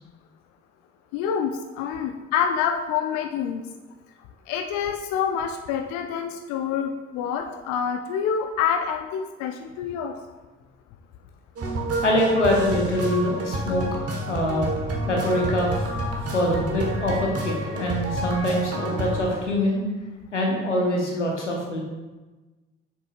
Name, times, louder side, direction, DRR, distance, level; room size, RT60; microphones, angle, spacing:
voice 1, 1.1-3.6 4.5-10.2, left 7 dB, 55° left, 6 dB, 0.5 m, -27 dB
sound 1, 11.6-19.3, right 1 dB, 40° right, 1.4 m, -29 dB
voice 2, 12.0-13.9 14.3-14.7 15.1-15.9 16.3-19.8 20.3-21.8, left 1 dB, 90° left, -1 dB, 0.9 m, -24 dB
7.6 x 6.6 x 2.4 m, 1.2 s
figure-of-eight pair, 45°, 35 cm